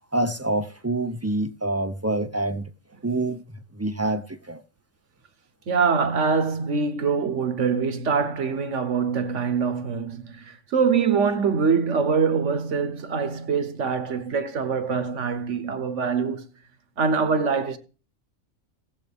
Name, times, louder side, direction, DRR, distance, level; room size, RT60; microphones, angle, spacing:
voice 1, 0.1-2.7 3.0-4.6, right 2 dB, 20° right, 0.4 m, -27 dB
voice 2, 5.7-16.4 17.0-17.8, right 5 dB, 65° right, 1.4 m, -24 dB
17.5 x 7.3 x 3.5 m
omnidirectional pair, 1.3 m